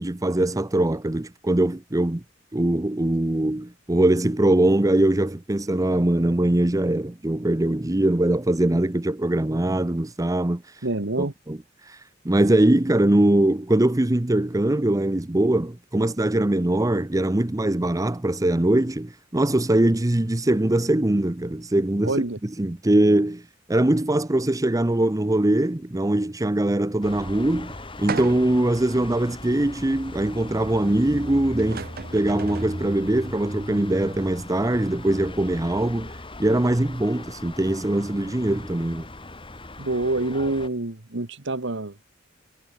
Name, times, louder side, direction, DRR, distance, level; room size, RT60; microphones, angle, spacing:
voice 1, 0.0-2.2 2.5-10.6 11.2-11.6 11.9-12.0 12.2-22.2 22.6-23.4 23.7-31.9 32.1-36.1 36.4-39.1, right 1 dB, 20° right, 0.7 m, -22 dB
voice 2, 10.8-11.3 22.0-22.4 39.8-41.9, right 2 dB, 65° right, 1.6 m, -26 dB
sound 1, 27.0-40.7, left 1 dB, 25° left, 3.6 m, -38 dB
sound 2, 28.1-28.7 29.3-29.4 31.2-31.3 31.6-32.8, right 5 dB, 50° right, 0.7 m, -34 dB
head